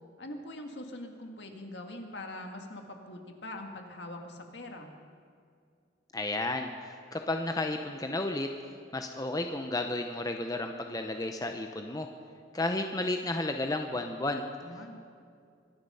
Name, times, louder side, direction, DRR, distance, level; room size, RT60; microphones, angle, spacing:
voice 1, 0.2-4.9 14.6-15.0, left 1 dB, 65° left, 3 dB, 1.8 m, -43 dB
voice 2, 6.1-8.5 8.9-12.1 12.5-14.4, left 2 dB, 20° left, 5 dB, 0.7 m, -32 dB
24.0 x 10.5 x 5.5 m, 2.3 s
head